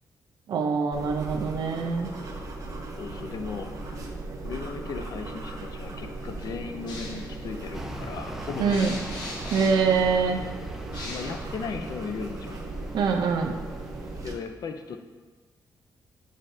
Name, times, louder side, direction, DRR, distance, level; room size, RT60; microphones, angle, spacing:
voice 1, 0.5-2.1 8.6-8.9 9.5-10.4 12.9-13.5, right 5 dB, 80° right, 3 dB, 0.5 m, -24 dB
sound 1, 0.9-14.3, right 2 dB, 50° right, 0.9 m, -38 dB
voice 2, 3.0-4.1 4.4-9.0 11.0-12.6 14.2-15.0, left 5 dB, 60° left, 6 dB, 0.5 m, -36 dB
sound 2, 6.9-12.4, left 2 dB, 75° left, 1.1 m, -43 dB
sound 3, 7.7-14.4, right 1 dB, 5° right, 0.5 m, -41 dB
7.5 x 6.3 x 2.6 m, 1.3 s
wide cardioid pair, 155°, 7 cm